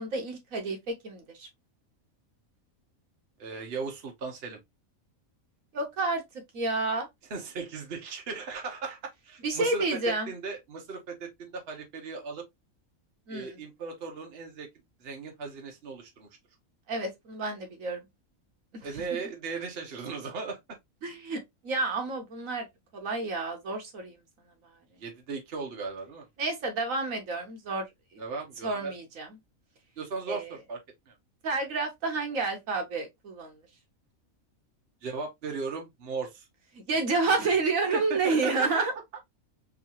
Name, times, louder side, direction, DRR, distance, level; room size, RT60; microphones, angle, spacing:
voice 1, 0.0-1.5 5.7-6.2 6.5-7.1 9.4-10.3 13.3-13.6 16.9-18.0 18.7-18.9 21.0-22.7 22.9-24.2 26.4-27.8 28.1-28.2 28.6-29.3 30.3-30.5 31.4-33.5 36.7-38.9, right 3 dB, 70° right, 1.4 m, -30 dB
voice 2, 3.4-4.6 7.3-12.5 13.3-14.7 15.0-16.3 18.8-20.6 25.0-26.3 28.2-28.9 30.0-30.8 31.1-31.2 35.0-36.5 37.3-37.4 37.8-38.9, right 4 dB, 50° right, 1.1 m, -37 dB
3.8 x 2.7 x 2.8 m
omnidirectional pair, 1.5 m